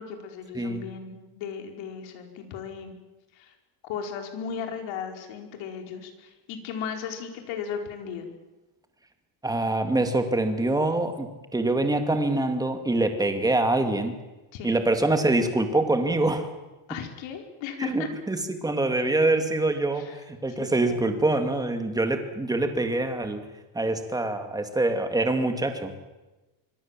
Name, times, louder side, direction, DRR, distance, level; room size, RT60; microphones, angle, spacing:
voice 1, 0.0-3.0 3.3-3.5 3.8-8.3 14.5-14.8 16.9-18.1 19.9-20.2 20.5-21.1, left 7 dB, 70° left, 4 dB, 5.0 m, -36 dB
voice 2, 0.5-0.9 9.4-14.2 14.6-16.5 17.8-23.5 23.7-25.9, right 2 dB, 10° right, 7 dB, 2.3 m, -25 dB
25.0 x 24.5 x 7.6 m, 1.1 s
cardioid pair, 160°, 47 cm